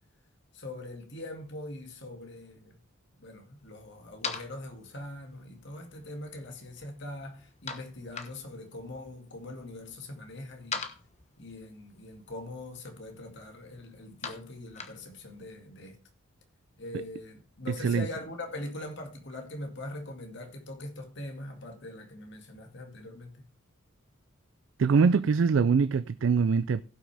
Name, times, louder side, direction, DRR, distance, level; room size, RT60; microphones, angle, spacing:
voice 1, 0.5-2.8 3.2-10.8 11.4-16.0 16.8-23.5, left 1 dB, 55° left, 2.1 m, -42 dB
sound 1, 3.6-15.5, left 5 dB, 30° left, 1.1 m, -45 dB
voice 2, 24.8-26.8, right 5 dB, 60° right, 0.3 m, -23 dB
16.5 x 6.1 x 3.4 m
head